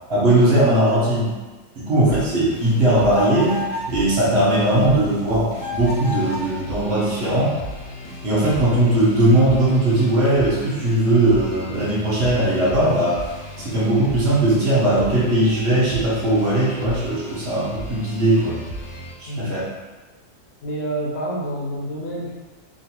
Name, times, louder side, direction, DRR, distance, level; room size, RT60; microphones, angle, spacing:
voice 1, 0.1-1.3 1.7-3.6 3.9-7.5 8.2-13.2 13.6-18.6 19.2-19.7, right 1 dB, 50° right, -7 dB, 1.0 m, -19 dB
sound 1, 2.1-19.1, equal, 90° left, 1.2 m, -36 dB
sound 2, 3.1-4.0 5.6-6.5, left 2 dB, 20° left, 0.6 m, -30 dB
voice 2, 19.3-19.6 20.6-22.3, right 1 dB, 65° left, -4 dB, 0.9 m, -28 dB
3.1 x 2.4 x 2.9 m, 1.2 s
omnidirectional pair, 1.6 m